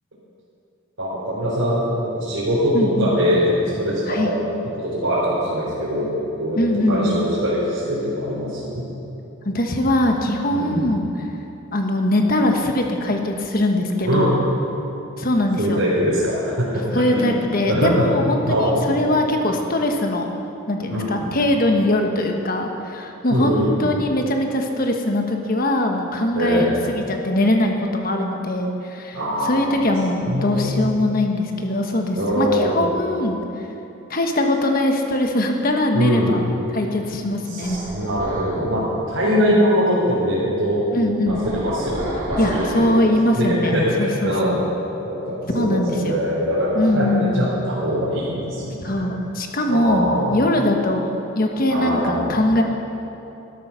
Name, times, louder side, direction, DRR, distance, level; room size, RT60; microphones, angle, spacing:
voice 1, 1.0-4.4 4.8-8.9 10.5-10.9 14.0-14.4 15.6-17.3 17.7-18.1 18.5-18.8 20.9-21.3 23.3-23.8 26.3-26.8 29.1-29.7 30.3-30.7 32.1-32.8 35.9-36.4 37.5-40.8 41.2-42.0 42.3-43.0 43.3-44.6 45.0-49.0 49.7-50.4 51.7-52.4, equal, 85° right, -9 dB, 3.5 m, -22 dB
voice 2, 2.7-3.1 4.1-4.3 6.6-7.2 9.4-11.3 11.7-14.4 15.2-15.8 16.9-20.4 20.7-33.7 34.1-36.5 36.7-37.8 39.2-39.6 40.9-41.4 42.4-44.6 45.5-46.2 46.7-47.5 48.8-52.6, left 1 dB, 45° left, 3 dB, 1.2 m, -21 dB
sound 1, 37.6-38.7 41.3-43.0, right 1 dB, 15° right, 2.9 m, -30 dB
13.0 x 12.5 x 5.8 m, 2.9 s
head